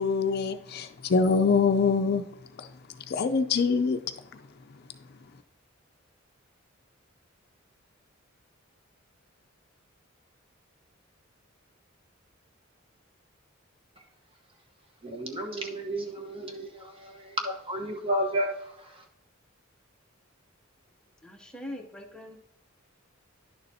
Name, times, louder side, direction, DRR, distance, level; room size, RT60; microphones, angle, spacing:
voice 1, 0.0-2.2 2.6-2.7 3.1-4.0, left 5 dB, 50° left, 0.4 m, -24 dB
voice 2, 15.0-19.0, right 1 dB, 25° right, 1.1 m, -32 dB
voice 3, 21.2-22.4, left 1 dB, 5° left, 0.9 m, -41 dB
10.5 x 6.8 x 2.7 m
head